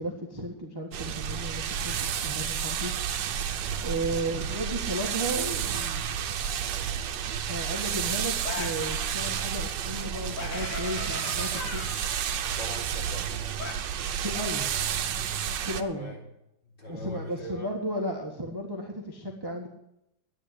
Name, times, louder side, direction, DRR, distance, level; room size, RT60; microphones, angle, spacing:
voice 1, 0.0-2.9 3.8-6.0 7.5-11.8 14.2-14.7 15.6-16.1 16.9-19.7, right 1 dB, 15° right, 1 dB, 1.4 m, -34 dB
sound 1, 0.9-15.8, right 8 dB, 75° right, 1.5 m, -31 dB
sound 2, 8.5-8.8 10.4-12.1 13.6-13.7, left 3 dB, 65° left, 2.7 m, -36 dB
voice 2, 12.4-13.5 15.9-16.2 16.6-17.7, equal, 30° left, -1 dB, 3.4 m, -41 dB
11.0 x 9.1 x 9.8 m, 0.85 s
omnidirectional pair, 2.0 m